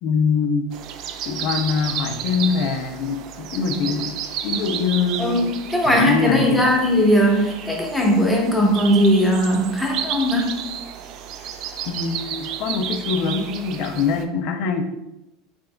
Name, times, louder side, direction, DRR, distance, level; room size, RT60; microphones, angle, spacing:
voice 1, 0.0-0.7 1.3-4.1 4.4-5.5 5.9-6.8 11.9-14.8, left 5 dB, 60° left, 6 dB, 0.5 m, -23 dB
sound 1, 0.7-14.3, right 9 dB, 50° right, 0.3 m, -32 dB
voice 2, 5.2-10.6, equal, 5° left, -1 dB, 0.8 m, -19 dB
3.7 x 3.5 x 2.2 m, 0.91 s
supercardioid pair, 125°, 0 cm